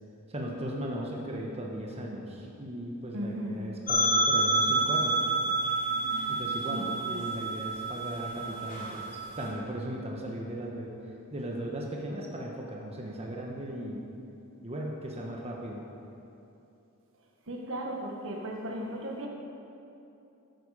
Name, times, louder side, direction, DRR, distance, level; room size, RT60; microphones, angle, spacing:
voice 1, 0.3-5.3 6.3-10.9 11.3-14.1 14.6-15.8, right 1 dB, 30° right, -1 dB, 1.1 m, -37 dB
voice 2, 3.1-3.6 6.7-7.2 17.5-19.3, equal, 60° right, 0 dB, 1.5 m, -36 dB
sound 1, 3.9-9.5, right 2 dB, 40° left, 2.8 m, -28 dB
14.5 x 8.5 x 4.9 m, 2.8 s
head